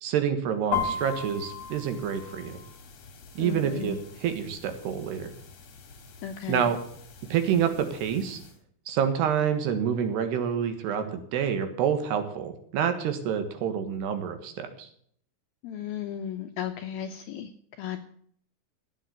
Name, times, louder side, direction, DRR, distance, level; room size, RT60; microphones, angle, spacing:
voice 1, 0.0-2.6 3.4-5.3 6.5-6.8 7.3-8.4 8.9-14.9, right 8 dB, 70° right, 8 dB, 3.4 m, -28 dB
sound 1, 0.7-8.5, left 6 dB, 50° left, 2.2 m, -38 dB
voice 2, 3.4-4.0 6.2-6.7 15.6-17.5 17.8-18.0, left 9 dB, 75° left, 6 dB, 2.3 m, -35 dB
15.0 x 8.6 x 8.0 m, 0.63 s
omnidirectional pair, 5.3 m